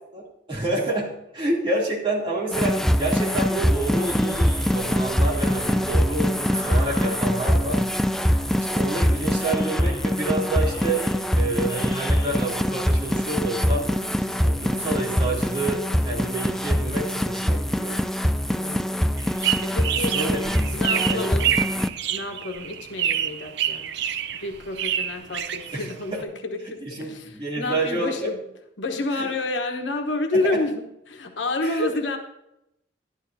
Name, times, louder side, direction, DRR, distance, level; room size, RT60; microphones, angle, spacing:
voice 1, 0.1-7.8 8.7-11.0 11.3-13.9 14.2-18.0 19.9-21.3 25.7-26.2 26.8-28.3 29.1-29.3 30.3-30.6 31.6-31.9, right 2 dB, 30° right, -5 dB, 2.9 m, -29 dB
sound 1, 2.5-21.9, equal, ahead, 0.3 m, -23 dB
sound 2, 2.8-4.9 5.3-7.7 8.0-8.9 9.3-10.3 10.5-12.3, left 1 dB, 20° left, 4.2 m, -42 dB
voice 2, 18.5-19.0 19.6-20.2 20.7-21.5 22.1-24.0 24.3-28.5 28.8-32.2, left 2 dB, 85° left, 4 dB, 1.2 m, -29 dB
sound 3, 19.2-26.2, right 10 dB, 65° right, 0.5 m, -27 dB
12.0 x 11.5 x 2.8 m, 0.82 s
head